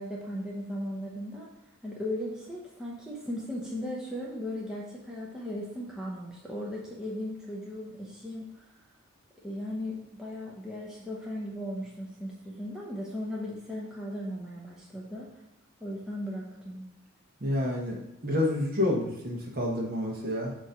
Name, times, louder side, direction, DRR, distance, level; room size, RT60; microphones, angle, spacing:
voice 1, 0.0-1.5 1.8-8.6 9.4-15.3 15.8-16.8, left 1 dB, 5° right, -5 dB, 0.7 m, -37 dB
voice 2, 17.4-20.5, left 1 dB, 45° right, -1 dB, 1.2 m, -29 dB
6.9 x 3.0 x 5.1 m, 0.87 s
head